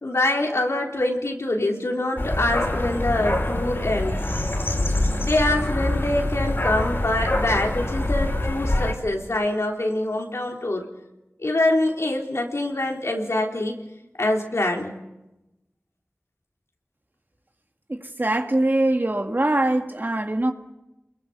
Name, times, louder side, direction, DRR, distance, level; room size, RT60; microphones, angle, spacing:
voice 1, 0.0-4.2 5.2-10.9 11.4-13.8 14.2-14.9, left 1 dB, 80° left, 3.9 m, -24 dB
sound 1, 2.2-8.9, left 1 dB, 55° left, 4.9 m, -25 dB
voice 2, 17.9-20.5, right 1 dB, 45° right, 2.2 m, -22 dB
28.5 x 21.5 x 7.0 m
wide cardioid pair, 40°, 5 cm